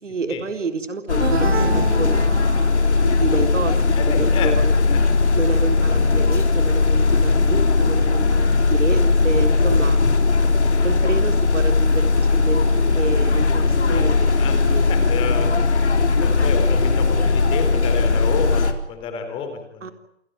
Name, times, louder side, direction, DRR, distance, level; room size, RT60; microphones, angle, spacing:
voice 1, 0.0-3.8 4.2-4.7 5.3-10.0 10.8-14.9 19.8-19.9, right 4 dB, 90° right, 7 dB, 4.1 m, -29 dB
sound 1, 1.1-18.7, left 3 dB, 70° left, 4.3 m, -18 dB
sound 2, 1.2-3.0, right 7 dB, 60° right, 1.9 m, -28 dB
voice 2, 4.0-4.5 4.8-5.0 9.5-9.7 10.7-11.1 13.9-14.0 14.4-14.6 14.9-18.6 18.9-19.9, left 6 dB, 15° left, 7 dB, 3.7 m, -30 dB
28.0 x 17.5 x 9.5 m, 0.82 s
hypercardioid pair, 165°, 35 cm